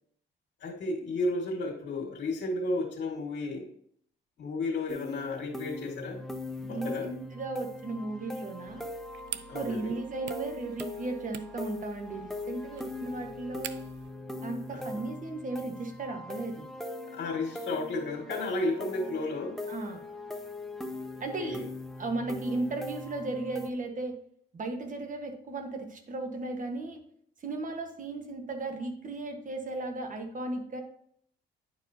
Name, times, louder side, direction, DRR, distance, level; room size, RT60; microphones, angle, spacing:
voice 1, 0.6-3.7 4.4-6.2 6.7-7.1 9.5-10.0 14.7-15.0 17.1-19.6 21.4-21.6, left 2 dB, 65° left, -2 dB, 1.9 m, -33 dB
sound 1, 4.9-23.7, left 2 dB, ahead, 0.7 m, -41 dB
voice 2, 6.6-8.9 9.5-13.8 14.4-16.7 19.7-20.0 21.2-21.6 22.0-24.1 24.5-27.0 27.4-30.8, right 2 dB, 40° right, 4 dB, 1.3 m, -35 dB
sound 2, 8.7-14.1, right 11 dB, 65° right, 0.5 m, -46 dB
10.0 x 4.7 x 2.8 m, 0.65 s
cardioid pair, 90°, 20 cm